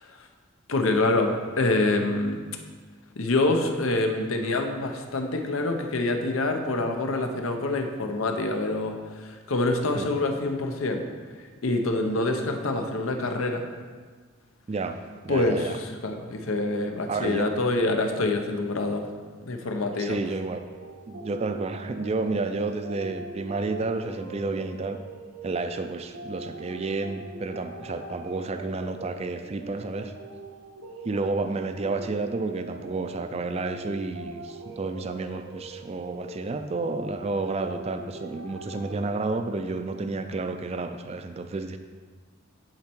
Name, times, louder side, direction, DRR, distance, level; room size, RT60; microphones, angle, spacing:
voice 1, 0.7-2.4 3.2-11.0 11.6-13.6 15.3-19.0 19.5-20.2, left 2 dB, 90° left, 4 dB, 0.8 m, -26 dB
voice 2, 15.2-15.8 17.1-17.5 20.0-20.6 21.1-25.0 25.4-30.1 31.0-41.8, right 3 dB, 30° right, 8 dB, 0.4 m, -31 dB
sound 1, 20.6-39.7, right 2 dB, 85° right, 1.0 m, -42 dB
10.5 x 4.3 x 4.5 m, 1.5 s
head